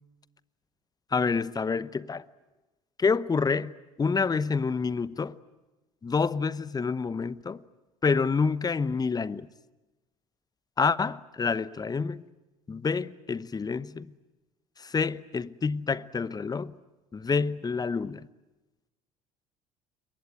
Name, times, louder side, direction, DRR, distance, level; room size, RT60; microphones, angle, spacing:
voice 1, 1.1-2.2 3.0-3.7 4.0-5.3 6.0-7.6 8.0-9.5 10.8-12.2 12.7-14.1 14.8-16.7 17.1-18.2, left 5 dB, 20° left, 0.9 m, -28 dB
28.0 x 22.5 x 9.2 m
hypercardioid pair, 60°, 17 cm